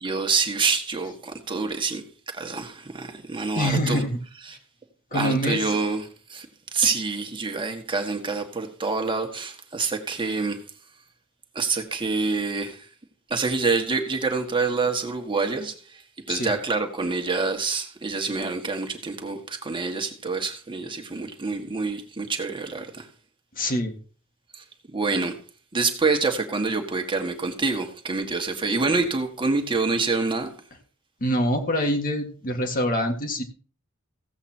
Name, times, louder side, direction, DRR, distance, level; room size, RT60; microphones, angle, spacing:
voice 1, 0.0-4.0 4.4-4.6 5.1-6.5 6.7-10.6 11.5-12.9 13.3-16.0 16.3-23.1 24.5-24.6 24.9-25.4 25.7-30.5, right 4 dB, 25° right, 1.6 m, -26 dB
voice 2, 3.6-4.2 5.1-5.6 16.3-16.5 23.6-24.0 31.2-33.4, equal, 45° left, 1.9 m, -25 dB
15.5 x 8.0 x 4.4 m
head